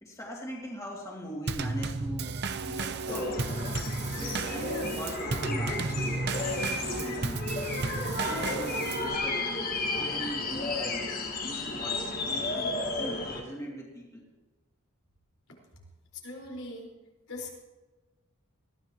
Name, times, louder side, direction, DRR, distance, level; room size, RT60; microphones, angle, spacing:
voice 1, 0.0-3.7 4.2-6.2 7.0-7.4 8.1-9.6 10.0-11.1 11.4-14.2, equal, 15° left, -3 dB, 2.5 m, -41 dB
Drum kit / Snare drum / Bass drum, 1.5-9.2, right 3 dB, 50° right, 0.7 m, -33 dB
sound 1, 3.1-13.4, left 2 dB, 40° left, 1.5 m, -33 dB
voice 2, 16.2-16.9 17.3-17.5, left 2 dB, 80° left, -1 dB, 4.7 m, -40 dB
21.0 x 15.0 x 3.0 m, 1.2 s
head